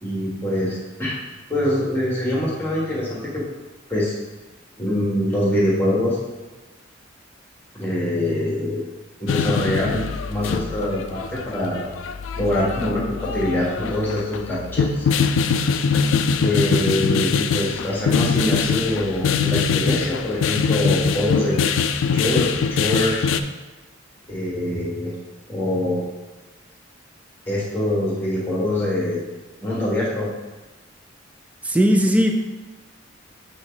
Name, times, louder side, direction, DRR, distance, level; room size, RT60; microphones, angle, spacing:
voice 1, 0.0-1.2 1.5-3.4 3.9-4.1 4.8-6.2 7.7-8.8 9.2-11.8 12.4-15.0 16.4-21.6 22.1-23.3 24.3-25.1 25.5-26.0 27.5-29.3 29.6-30.3, left 1 dB, 10° left, -5 dB, 1.6 m, -24 dB
sound 1, 9.3-23.4, left 5 dB, 75° left, 0.4 m, -23 dB
voice 2, 31.7-32.4, equal, 5° right, 4 dB, 0.4 m, -17 dB
7.6 x 3.5 x 3.8 m, 1.2 s
head